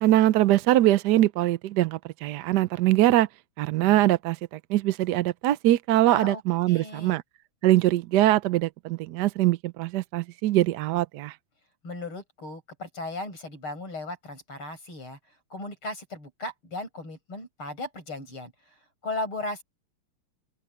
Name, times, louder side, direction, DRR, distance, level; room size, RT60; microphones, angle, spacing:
voice 1, 0.0-3.3 3.6-7.2 7.6-11.3, right 14 dB, 75° right, 0.9 m, -22 dB
voice 2, 6.0-6.4 6.7-7.2 11.8-15.2 15.5-18.5 19.0-19.6, left 2 dB, 70° left, 8.3 m, -36 dB
open air
omnidirectional pair, 2.4 m